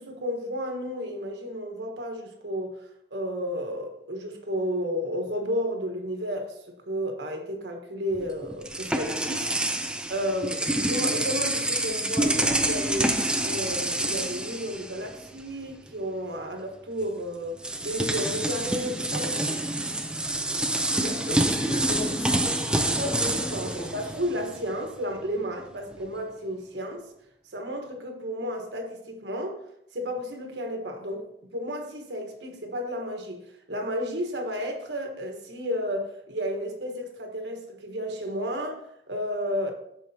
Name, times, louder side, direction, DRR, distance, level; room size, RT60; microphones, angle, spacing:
voice 1, 0.0-2.7 3.1-9.5 10.1-13.1 13.4-19.7 23.0-27.0 27.5-29.6 29.9-31.3 31.5-33.4 33.7-39.7, equal, 85° right, 1.3 m, -32 dB
sound 1, 8.1-15.4 15.7-15.9 17.0-17.1 17.6-24.7, right 1 dB, 5° right, 0.4 m, -27 dB
voice 2, 21.0-24.0, left 1 dB, 50° left, 2.0 m, -37 dB
12.5 x 4.8 x 2.8 m
head